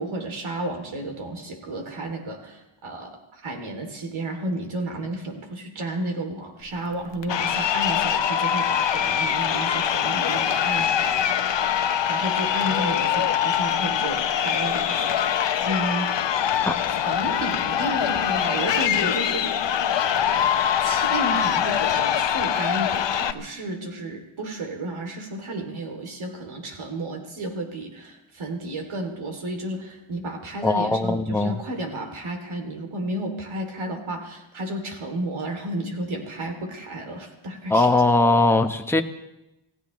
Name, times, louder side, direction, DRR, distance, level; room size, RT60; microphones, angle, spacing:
voice 1, 0.0-11.4 11.8-16.1 16.5-16.6 17.0-19.5 20.8-38.0, right 1 dB, 75° right, 3 dB, 3.0 m, -32 dB
Crowd, 7.2-23.3, left 9 dB, 60° left, 0.9 m, -23 dB
voice 2, 30.6-31.6 37.7-39.0, left 2 dB, 5° left, 4 dB, 1.0 m, -20 dB
28.0 x 15.5 x 3.2 m, 0.94 s
wide cardioid pair, 100°, 49 cm